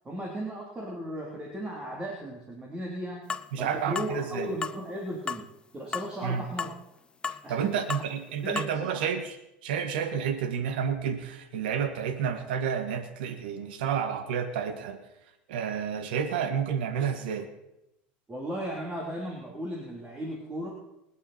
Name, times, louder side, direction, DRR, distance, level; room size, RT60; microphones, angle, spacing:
voice 1, 0.0-3.2 3.6-5.4 5.7-6.7 7.4-7.9 8.4-9.0 18.3-20.7, equal, 20° right, -2 dB, 3.2 m, -36 dB
sound 1, 3.3-3.5 3.9-4.1 4.6-4.8 5.3-5.4 5.9-6.1 6.6-6.8 7.2-7.4 7.9-8.1 8.6-8.7, left 5 dB, 20° left, 0.6 m, -33 dB
voice 2, 3.5-4.5 6.2-6.4 7.5-9.4 9.6-15.0 15.5-17.5, right 7 dB, 90° right, 8 dB, 1.5 m, -30 dB
27.0 x 9.2 x 4.3 m, 0.88 s
supercardioid pair, 120°, 5 cm